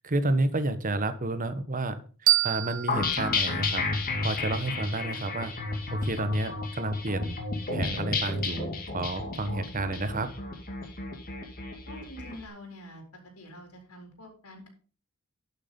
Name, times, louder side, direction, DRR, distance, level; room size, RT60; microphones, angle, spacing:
voice 1, 0.0-2.0 2.4-3.8 4.2-5.5 5.9-7.4 7.7-8.7 8.9-10.3, right 2 dB, 40° right, 10 dB, 1.2 m, -30 dB
sound 1, 2.3-5.1, right 15 dB, 65° right, 0.6 m, -29 dB
sound 2, 2.9-12.3, left 3 dB, 40° left, 2.4 m, -32 dB
voice 2, 11.9-13.0 13.4-14.7, equal, 90° left, 2 dB, 4.1 m, -46 dB
11.5 x 6.6 x 5.3 m, 0.38 s
head